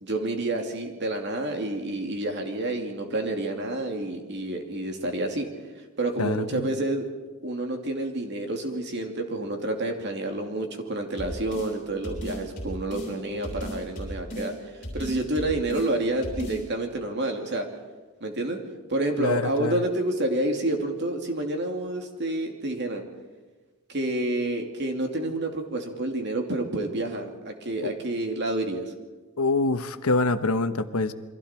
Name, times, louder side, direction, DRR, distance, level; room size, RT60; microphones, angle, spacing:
voice 1, 0.0-5.5 6.0-7.0 7.4-14.5 14.9-17.7 18.2-18.6 18.9-23.0 23.9-28.9, right 1 dB, 50° right, 3 dB, 2.7 m, -29 dB
voice 2, 6.2-6.7 19.2-19.8 27.8-27.9 29.4-31.1, left 3 dB, 85° left, 10 dB, 1.1 m, -25 dB
sound 1, 11.2-11.7 12.0-13.1 13.4-14.5 14.8-15.9 16.2-16.6, equal, 35° left, 7.9 m, -35 dB
28.5 x 23.5 x 4.5 m, 1.3 s
head